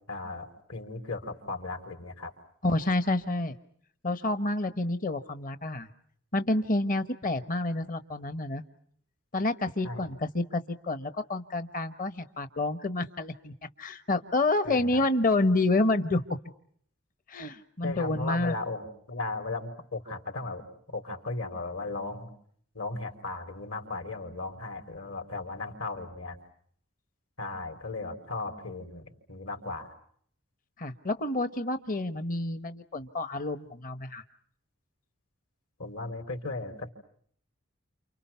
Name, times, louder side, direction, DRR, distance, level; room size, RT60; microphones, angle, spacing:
voice 1, 0.1-2.3 9.8-10.1 14.6-15.0 17.8-20.7 20.9-22.3 22.7-26.4 27.4-29.9 35.8-36.9, left 3 dB, 70° left, 6 dB, 4.2 m, -36 dB
voice 2, 2.6-3.5 4.0-5.9 6.3-8.6 9.3-16.2 17.3-18.6 30.8-34.2, left 2 dB, 40° left, 10 dB, 1.2 m, -29 dB
29.5 x 29.0 x 5.8 m, 0.63 s
head